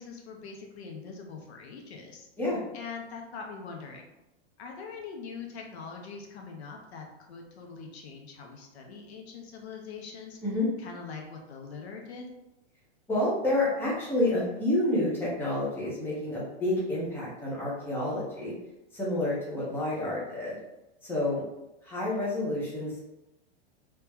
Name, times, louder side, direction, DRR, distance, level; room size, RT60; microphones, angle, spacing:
voice 1, 0.0-2.3 2.7-4.1 4.6-10.4 10.8-12.3, left 5 dB, 75° left, 1 dB, 0.9 m, -43 dB
voice 2, 13.1-18.5 18.9-20.6 21.0-21.4 21.8-23.0, left 1 dB, 5° left, -6 dB, 0.9 m, -29 dB
3.1 x 2.9 x 3.5 m, 0.95 s
supercardioid pair, 150°, 32 cm